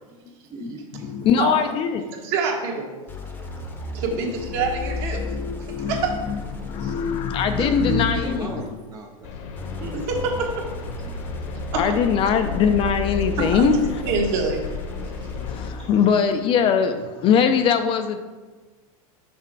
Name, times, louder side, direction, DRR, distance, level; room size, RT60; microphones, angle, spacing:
voice 1, 0.5-1.1 7.5-9.5 10.0-10.1 10.4-10.5 11.1-11.2, right 6 dB, 20° right, 1 dB, 0.5 m, -34 dB
voice 2, 1.0-2.1 4.6-8.7 11.7-13.8 15.4-18.2, left 7 dB, 30° left, 8 dB, 0.5 m, -22 dB
voice 3, 2.2-2.9 3.9-5.2 5.9-6.1 6.8-6.9 9.8-10.7 11.7-12.0 13.4-14.6 15.8-15.9, right 4 dB, 55° right, 2 dB, 1.5 m, -26 dB
sound 1, 3.1-8.7 9.5-16.0, left 3 dB, 10° left, 0.8 m, -34 dB
sound 2, 9.2-15.7, left 5 dB, 55° left, 1.0 m, -34 dB
6.0 x 5.6 x 4.5 m, 1.3 s
supercardioid pair, 140°, 18 cm